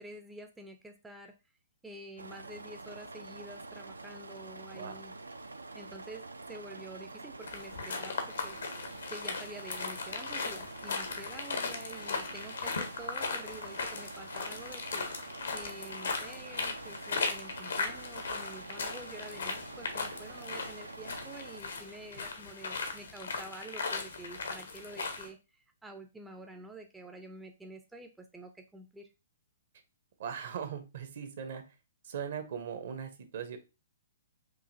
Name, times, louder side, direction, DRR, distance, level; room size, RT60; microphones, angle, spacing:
voice 1, 0.0-1.3 1.8-5.1 5.7-8.7 9.1-15.1 15.5-29.1, right 1 dB, 5° right, 5 dB, 0.4 m, -48 dB
sound 1, 2.2-21.6, right 3 dB, 85° right, 0.4 m, -47 dB
sound 2, 7.4-25.3, left 4 dB, 70° left, 0.8 m, -38 dB
voice 2, 30.2-31.7 32.0-33.6, right 7 dB, 55° right, 8 dB, 0.8 m, -39 dB
4.8 x 2.7 x 2.6 m, 0.28 s
figure-of-eight pair, 120°, 0 cm